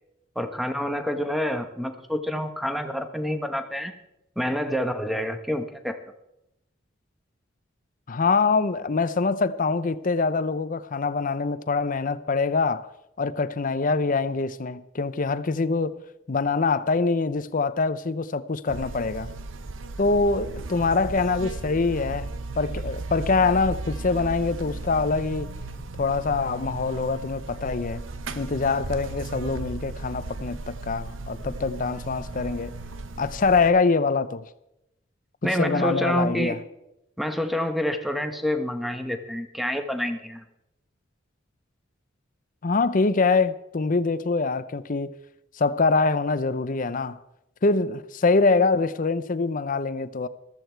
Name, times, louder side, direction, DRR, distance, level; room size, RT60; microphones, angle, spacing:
voice 1, 0.3-3.9 4.4-6.0 35.4-36.6 37.2-40.4, equal, ahead, 1.1 m, -27 dB
voice 2, 8.1-12.9 13.2-16.0 16.3-19.3 20.0-22.3 22.6-25.5 26.0-28.0 28.4-32.7 33.2-34.4 35.6-36.6 42.6-45.1 45.6-47.2 47.6-50.3, left 4 dB, 45° left, 0.6 m, -24 dB
Buzz, 18.7-33.7, right 2 dB, 85° right, 0.9 m, -36 dB
14.5 x 13.5 x 4.5 m
head